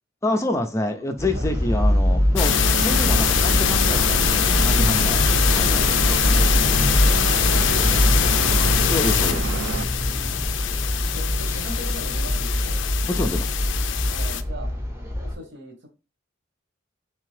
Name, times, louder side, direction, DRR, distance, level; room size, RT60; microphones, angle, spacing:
voice 1, 0.2-2.5 2.8-5.2 5.5-6.7 8.9-9.9 13.0-13.6, left 2 dB, 15° left, 5 dB, 0.4 m, -28 dB
sound 1, 1.2-15.4, equal, 15° right, 0.8 m, -23 dB
sound 2, 2.4-14.4, left 10 dB, 75° left, 0.4 m, -23 dB
Stream / Boat Water vehicle, 2.4-9.9, right 6 dB, 80° right, 0.3 m, -30 dB
voice 2, 7.1-8.7 9.9-10.5 11.1-12.8 14.1-14.7 15.1-15.9, right 1 dB, 65° right, 4 dB, 1.1 m, -39 dB
3.6 x 3.4 x 3.2 m, 0.30 s
head